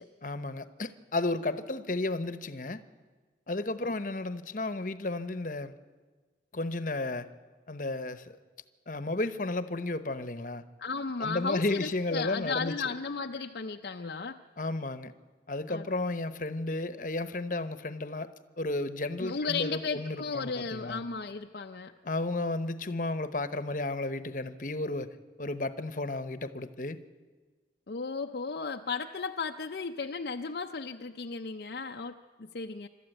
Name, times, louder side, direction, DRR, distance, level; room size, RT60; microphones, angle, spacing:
voice 1, 0.2-2.8 3.5-5.7 6.5-7.3 7.7-8.4 8.9-10.6 11.2-12.9 14.6-15.1 15.5-21.0 22.0-27.0, left 2 dB, 45° left, 12 dB, 0.9 m, -33 dB
voice 2, 10.8-14.4 15.7-15.8 19.2-21.9 27.9-32.9, left 4 dB, 60° left, 4 dB, 0.6 m, -35 dB
26.5 x 13.0 x 9.1 m, 1.4 s
head